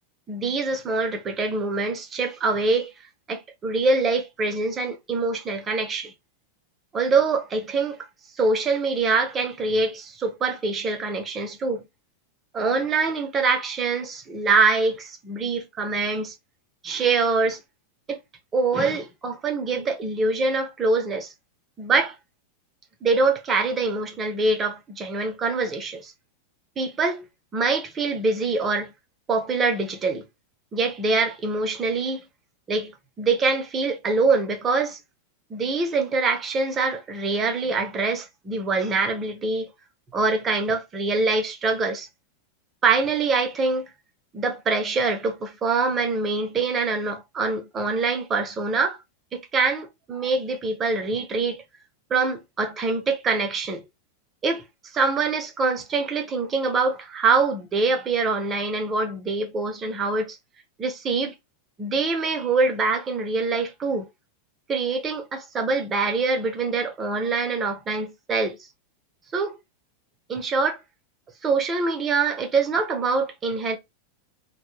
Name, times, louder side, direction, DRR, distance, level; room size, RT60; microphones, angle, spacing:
voice 1, 0.3-2.9 3.3-6.1 6.9-8.0 8.4-11.8 12.5-16.3 16.8-17.6 18.1-18.2 18.5-21.3 21.8-22.1 23.0-26.1 26.8-27.2 27.5-28.9 29.3-30.2 30.7-32.2 32.7-32.9 33.2-35.0 35.5-39.7 40.1-42.1 42.8-43.9 44.3-49.0 49.3-51.6 52.1-53.8 54.4-54.6 54.9-60.4 60.8-61.3 61.8-64.1 64.7-68.6 69.3-69.6 70.3-70.8 71.4-73.8, right 3 dB, 25° right, 0.6 m, -24 dB
2.1 x 2.1 x 3.1 m
figure-of-eight pair, 90°, 0 cm